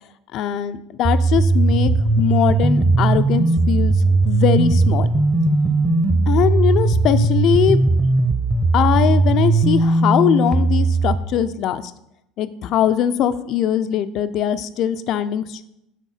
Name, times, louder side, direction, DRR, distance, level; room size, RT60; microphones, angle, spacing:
voice 1, 0.3-5.1 6.3-7.8 8.7-11.9 12.4-15.6, left 10 dB, 55° left, 12 dB, 0.4 m, -21 dB
sound 1, 1.0-11.2, right 3 dB, 25° right, 0.9 m, -17 dB
7.3 x 3.7 x 5.6 m, 0.83 s
supercardioid pair, 100°, 0 cm